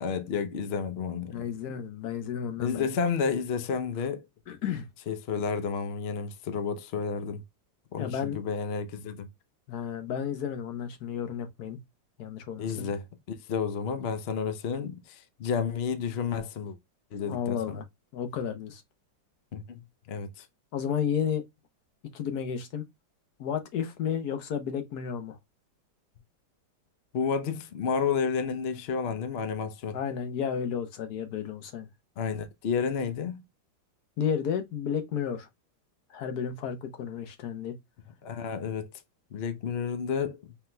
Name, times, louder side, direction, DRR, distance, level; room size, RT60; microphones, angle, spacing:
voice 1, 0.0-1.4 2.6-4.3 5.1-7.4 7.9-9.3 12.6-16.8 17.1-17.8 19.5-20.5 27.1-30.0 32.2-33.4 38.2-38.9 39.3-40.4, left 6 dB, 80° left, 0.5 m, -31 dB
voice 2, 1.3-2.9 4.5-4.9 8.0-8.4 9.7-11.8 12.2-12.9 17.2-17.8 18.1-18.8 20.7-21.4 22.1-22.8 23.4-25.4 29.9-31.9 34.2-35.5 36.1-37.8, left 8 dB, 60° left, 1.3 m, -32 dB
5.7 x 3.5 x 2.2 m
omnidirectional pair, 2.0 m